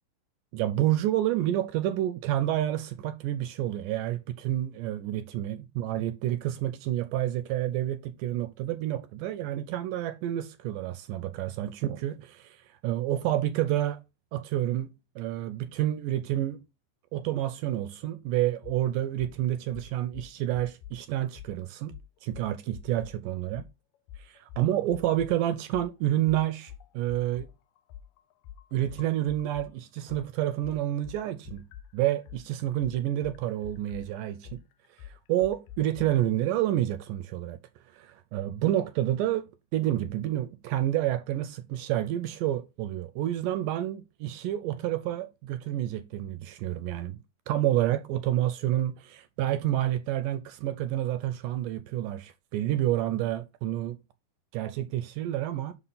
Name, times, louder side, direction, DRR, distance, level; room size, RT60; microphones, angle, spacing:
voice 1, 0.5-14.0 14.3-16.6 17.1-22.0 22.2-23.6 24.2-27.5 28.7-31.7 31.9-34.6 35.0-37.6 37.9-47.2 47.5-54.0 54.5-55.7, right 13 dB, 80° right, 2.0 m, -29 dB
sound 1, 18.6-18.8 19.2-19.4 19.7-21.0 21.4-21.5 21.9-23.2 23.5-23.7 24.1-25.4 25.7-29.7 30.1-36.1, left 10 dB, 80° left, 2.2 m, -46 dB
6.0 x 5.6 x 3.8 m
omnidirectional pair, 4.0 m